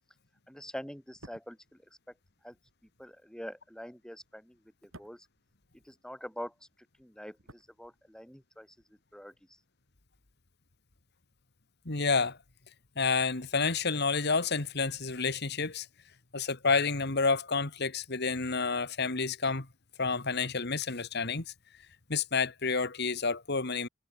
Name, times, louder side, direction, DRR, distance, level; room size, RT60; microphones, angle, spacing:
voice 1, 0.5-1.8 2.4-2.6 3.0-5.3 5.7-6.5 7.0-8.7 9.1-9.6, equal, 5° left, 3.2 m, -45 dB
sound 1, 1.0-6.3 6.6-8.4 8.7-8.9, right 1 dB, 90° right, 7.6 m, -57 dB
voice 2, 11.9-12.4 13.0-15.9 16.3-19.7 20.0-21.4 22.1-23.9, left 4 dB, 55° left, 2.0 m, -29 dB
head